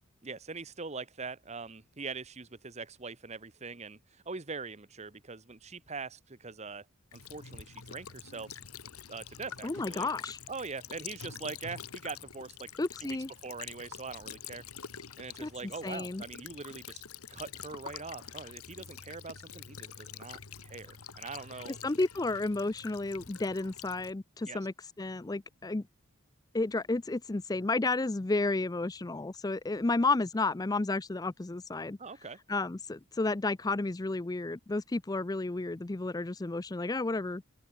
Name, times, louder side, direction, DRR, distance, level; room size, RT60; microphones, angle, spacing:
voice 1, 0.2-6.9 7.1-8.6 9.1-10.1 10.5-12.7 13.0-13.2 13.4-14.6 15.2-17.0 17.3-21.8 24.4-24.6 32.0-32.4, right 4 dB, 30° right, 1.0 m, -42 dB
Child speech kid speaking / Bird vocalization bird call bird song / Stream, 7.1-24.1, left 7 dB, 75° left, 1.8 m, -47 dB
voice 2, 9.6-10.4 12.8-13.3 15.4-15.5 15.8-16.2 21.7-25.8 26.5-32.0 32.5-37.4, left 2 dB, 15° left, 0.4 m, -32 dB
open air
head